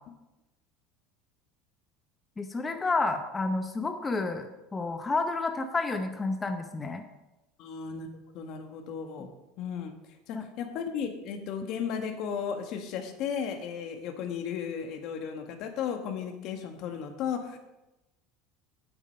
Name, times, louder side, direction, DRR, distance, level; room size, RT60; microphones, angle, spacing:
voice 1, 2.4-7.0 9.2-9.3 10.3-10.5, left 3 dB, 15° left, 6 dB, 0.7 m, -30 dB
voice 2, 7.6-8.1 8.3-9.3 9.6-9.9 10.3-17.6, left 7 dB, 55° left, 5 dB, 1.5 m, -35 dB
8.9 x 8.0 x 5.4 m, 0.98 s
cardioid pair, 145°, 0 cm